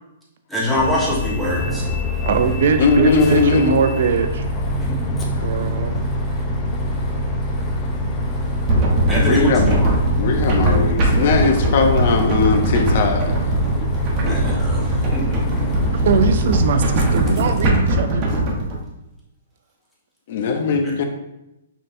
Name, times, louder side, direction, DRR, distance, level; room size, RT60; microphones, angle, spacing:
voice 1, 0.5-1.8 4.8-5.2 9.1-10.0 14.2-15.8 20.8-21.0, left 1 dB, ahead, -8 dB, 1.3 m, -24 dB
Bus, 0.8-17.7, equal, 15° left, 0.6 m, -24 dB
voice 2, 2.2-4.5 5.4-6.1 15.9-18.3, right 5 dB, 60° right, 8 dB, 0.5 m, -21 dB
voice 3, 2.8-3.8 9.2-9.8 10.2-13.3 20.3-21.0, left 4 dB, 50° left, 5 dB, 0.7 m, -19 dB
sound 1, 8.7-18.8, right 1 dB, 30° right, 1.0 m, -20 dB
5.4 x 3.8 x 2.6 m, 0.91 s
hypercardioid pair, 155°, 0 cm